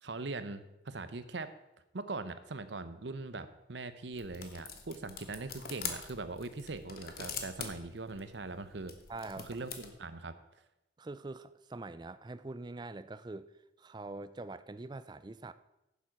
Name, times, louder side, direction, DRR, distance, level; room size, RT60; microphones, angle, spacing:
voice 1, 0.0-1.5 1.9-8.9 9.4-10.3, right 3 dB, 70° right, 12 dB, 0.8 m, -41 dB
sound 1, 4.1-9.9, left 6 dB, 55° left, 1.3 m, -44 dB
voice 2, 9.1-9.7 11.0-13.5 13.8-15.5, right 2 dB, 25° right, 13 dB, 0.4 m, -44 dB
10.5 x 7.3 x 5.9 m, 0.93 s
head